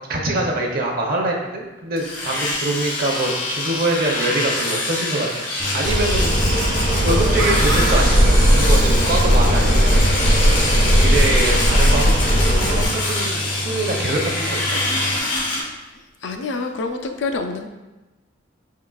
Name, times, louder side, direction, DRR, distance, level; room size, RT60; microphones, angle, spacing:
voice 1, 0.1-5.5 5.7-6.8 7.0-10.7 11.0-14.8, right 2 dB, 50° right, 0 dB, 0.6 m, -25 dB
Domestic sounds home sounds, 2.0-15.6, left 2 dB, 80° left, 1.3 m, -25 dB
Idling, 5.6-15.2, equal, 5° right, 0.3 m, -30 dB
sound 1, 5.8-12.8, equal, 75° right, 0.9 m, -17 dB
voice 2, 16.2-17.7, left 3 dB, 65° left, 5 dB, 0.4 m, -26 dB
5.4 x 3.7 x 2.3 m, 1.1 s
head